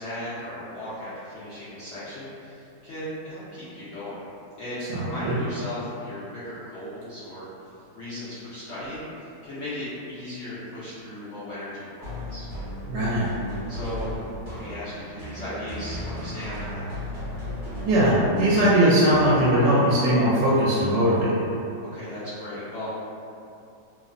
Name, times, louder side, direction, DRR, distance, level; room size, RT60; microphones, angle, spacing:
voice 1, 0.0-4.2 4.6-7.5 7.9-12.5 13.7-14.2 14.5-16.8 21.9-23.0, left 1 dB, 65° left, -12 dB, 0.7 m, -36 dB
voice 2, 5.0-5.4 12.9-13.3 17.9-21.5, right 1 dB, 75° right, -8 dB, 1.1 m, -20 dB
sound 1, 12.0-19.8, left 1 dB, 55° right, 1.3 m, -36 dB
3.0 x 2.0 x 2.5 m, 2.6 s
omnidirectional pair, 1.9 m